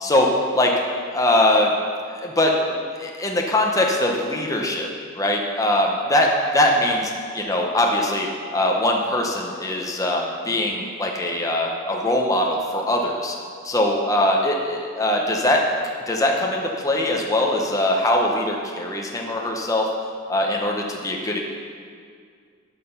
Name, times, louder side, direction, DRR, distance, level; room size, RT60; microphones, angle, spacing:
voice 1, 0.0-0.7 1.1-1.7 2.1-4.9 5.1-13.3 13.6-15.6 16.1-19.9 20.3-21.4, left 1 dB, 15° left, 0 dB, 0.9 m, -22 dB
12.5 x 5.8 x 5.6 m, 2.1 s
head